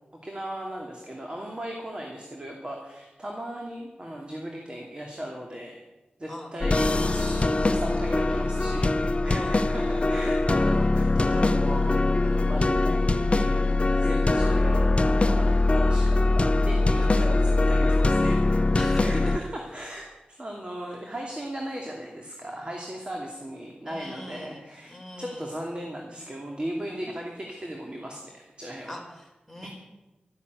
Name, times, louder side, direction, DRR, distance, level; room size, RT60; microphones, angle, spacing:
voice 1, 0.2-5.8 6.2-13.6 13.9-28.9 29.6-29.7, right 1 dB, 35° right, 0 dB, 2.6 m, -37 dB
sound 1, 6.6-19.4, left 2 dB, 40° left, 0.9 m, -22 dB
voice 2, 9.3-9.6 16.9-17.4 18.7-19.3 23.9-24.6 24.9-25.5 28.9-29.7, left 1 dB, 5° left, 0 dB, 4.7 m, -41 dB
13.0 x 11.5 x 8.2 m, 1.1 s
wide cardioid pair, 60°, 3 cm